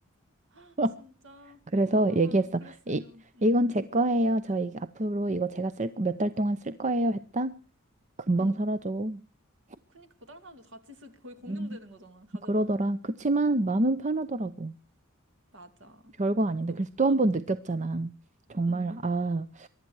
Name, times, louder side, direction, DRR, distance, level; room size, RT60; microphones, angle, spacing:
voice 1, 0.5-3.6 8.4-8.6 9.9-12.8 14.4-14.5 15.5-16.1 16.7-17.4 18.6-19.0, left 1 dB, 60° right, 2.6 m, -50 dB
voice 2, 1.7-3.0 3.4-7.5 8.3-9.2 11.5-11.8 12.5-14.7 16.2-18.1 18.5-19.7, right 2 dB, 35° right, 0.7 m, -27 dB
23.5 x 12.0 x 4.7 m
head